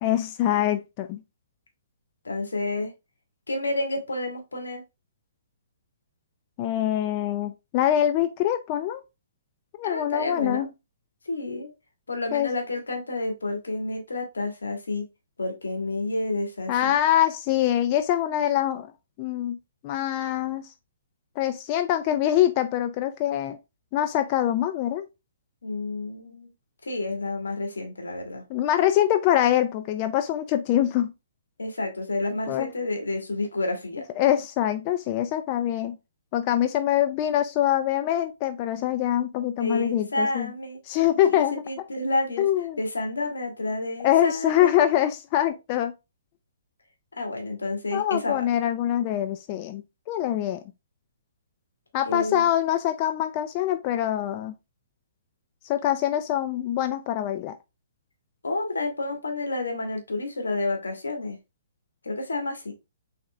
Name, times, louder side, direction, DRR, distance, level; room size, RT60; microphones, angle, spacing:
voice 1, 0.0-1.2 6.6-9.0 9.8-10.7 12.3-12.5 16.7-18.9 19.2-19.6 19.8-20.7 21.4-23.6 23.9-25.0 28.5-31.1 32.5-32.7 34.2-36.0 36.3-40.5 40.9-41.6 42.4-42.8 44.0-45.9 47.9-49.8 50.1-50.6 51.9-54.5 55.6-57.6, left 12 dB, 35° left, 0.4 m, -24 dB
voice 2, 2.2-2.9 3.5-4.8 9.8-10.7 11.3-11.7 12.1-15.0 15.4-16.9 25.6-26.5 26.8-28.4 31.6-34.1 39.6-40.8 41.3-42.5 42.8-44.8 47.2-48.5 52.1-52.5 58.4-61.4 62.0-62.7, left 2 dB, 85° left, 1.6 m, -30 dB
4.2 x 3.9 x 3.2 m
hypercardioid pair, 135°, 0 cm